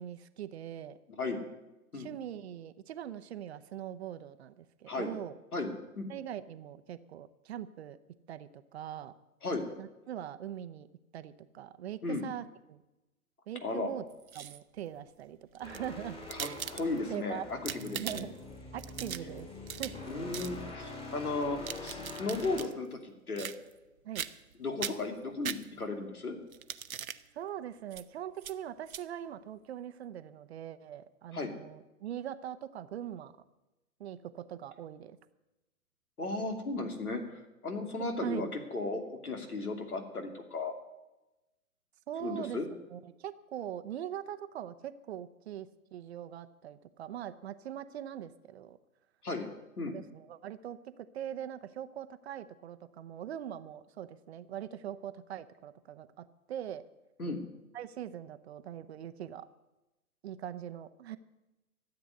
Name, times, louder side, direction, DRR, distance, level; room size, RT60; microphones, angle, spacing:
voice 1, 0.0-1.0 1.9-5.3 6.1-8.0 8.3-9.1 9.8-10.9 11.1-12.8 13.5-14.0 14.3-16.8 17.1-17.4 17.9-18.3 18.7-19.5 19.8-20.0 24.0-24.3 27.3-33.3 34.0-35.2 38.2-38.5 42.1-42.6 42.9-48.8 49.9-56.8 57.7-59.5 60.2-61.2, right 10 dB, 45° right, 12 dB, 0.9 m, -42 dB
voice 2, 5.5-6.1 9.4-9.7 12.0-12.2 13.6-13.9 16.3-18.3 20.1-23.5 24.6-26.4 31.3-31.5 36.2-37.2 37.6-40.7 42.2-42.7 49.2-49.5 49.8-50.0 57.2-57.4, left 3 dB, 80° left, 5 dB, 2.8 m, -35 dB
sound 1, 14.1-14.8 15.5-17.2 17.5-18.4 18.8-20.1 20.3-20.6 21.4-22.7 23.4-23.9 24.2-24.5 24.8-26.0 26.5-27.2 27.9-28.0 28.4-28.5 28.9-29.0, right 9 dB, 70° right, 0.8 m, -40 dB
sound 2, 15.6-22.6, left 2 dB, 10° left, 2.5 m, -45 dB
13.5 x 8.1 x 9.6 m, 1.0 s
figure-of-eight pair, 120°, 43 cm